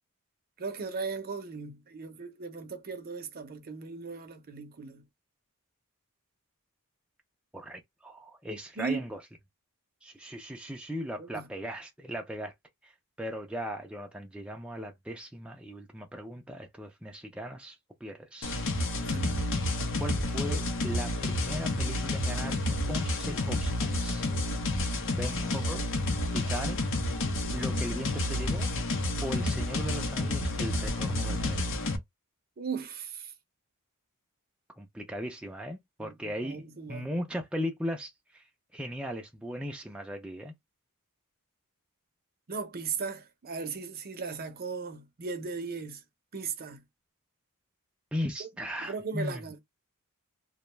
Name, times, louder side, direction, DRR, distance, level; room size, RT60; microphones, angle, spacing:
voice 1, 0.6-5.0 8.8-9.0 11.2-11.5 19.0-19.3 32.6-33.3 36.0-37.1 42.5-46.0 46.3-46.8 48.4-48.5 48.8-49.6, right 5 dB, 45° right, 0.6 m, -37 dB
voice 2, 7.5-9.2 10.0-12.5 12.8-12.9 13.2-17.8 18.0-18.6 20.0-22.6 22.9-24.3 25.1-25.9 26.3-26.8 27.5-28.7 29.2-31.7 34.8-38.4 38.7-40.5 48.1-49.4, equal, 5° right, 0.4 m, -38 dB
sound 1, 18.4-32.0, left 1 dB, 60° left, 0.7 m, -30 dB
2.3 x 2.2 x 3.0 m
head